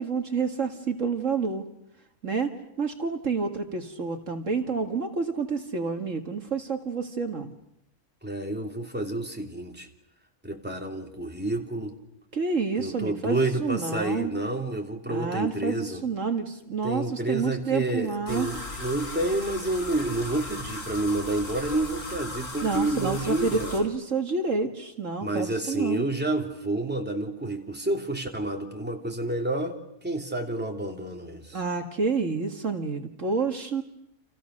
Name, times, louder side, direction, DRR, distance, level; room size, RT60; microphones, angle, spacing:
voice 1, 0.0-1.6 2.2-2.5 2.8-7.5 12.3-14.3 15.1-18.5 22.6-26.0 31.5-33.8, right 4 dB, 60° right, 5 dB, 2.2 m, -29 dB
voice 2, 8.2-9.9 10.4-12.0 12.8-16.0 16.8-23.9 25.2-29.8 30.0-31.6, right 2 dB, 5° right, 2 dB, 3.0 m, -29 dB
sound 1, 18.3-23.8, left 2 dB, 65° left, 4.7 m, -37 dB
30.0 x 29.0 x 6.6 m, 0.78 s
omnidirectional pair, 1.5 m